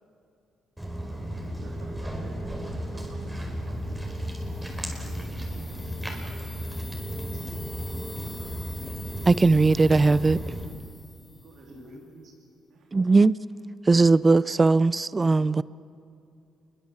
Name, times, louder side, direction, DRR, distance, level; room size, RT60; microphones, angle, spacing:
Walk footsteps, 0.8-10.7, equal, 10° right, 4.8 m, -34 dB
voice 1, 1.5-4.5 11.4-11.7 12.7-13.1, right 4 dB, 75° right, 3.1 m, -52 dB
sound 1, 4.0-11.9, left 3 dB, 20° left, 2.6 m, -47 dB
voice 2, 4.9-6.2 6.8-7.6 8.2-8.5 11.7-12.3, right 1 dB, 60° right, 7.2 m, -49 dB
voice 3, 9.2-10.4 12.9-13.3 13.9-15.6, right 3 dB, 25° right, 0.5 m, -19 dB
27.0 x 22.5 x 7.3 m
cardioid pair, 90°, 0 cm